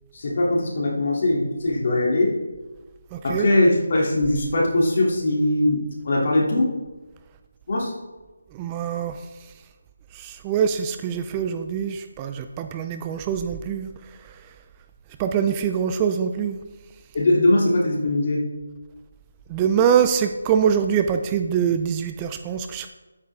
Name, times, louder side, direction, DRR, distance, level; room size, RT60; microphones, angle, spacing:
voice 1, 0.1-2.3 3.2-6.7 7.7-7.9 17.1-18.4, left 1 dB, 50° left, -2 dB, 3.1 m, -21 dB
voice 2, 3.1-3.5 8.5-9.2 10.1-13.9 15.2-16.6 19.5-22.9, right 8 dB, 20° right, 7 dB, 0.5 m, -24 dB
11.0 x 8.9 x 3.7 m, 1.2 s
figure-of-eight pair, 160°, 0 cm